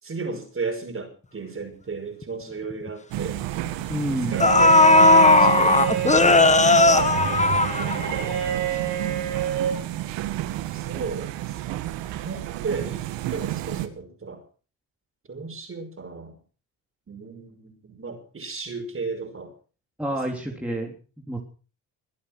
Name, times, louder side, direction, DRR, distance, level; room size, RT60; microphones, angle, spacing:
voice 1, 0.0-3.4 4.3-7.2 7.8-8.4 10.7-11.6 12.0-14.4 15.3-16.4 17.1-19.5 20.1-20.7, right 4 dB, 30° right, 6 dB, 5.6 m, -35 dB
sound 1, 2.2-2.3 2.7-2.9 3.9-4.0 4.4-8.3 8.7-8.8, left 3 dB, 15° left, 1.4 m, -16 dB
sound 2, 3.1-13.9, right 14 dB, 85° right, 1.9 m, -31 dB
voice 2, 3.9-4.4 20.0-20.9 21.3-21.4, right 1 dB, 5° right, 0 dB, 3.5 m, -28 dB
Bowed string instrument, 4.3-9.8, right 9 dB, 65° right, 5.9 m, -28 dB
23.0 x 8.7 x 6.1 m, 0.38 s
cardioid pair, 105°, 43 cm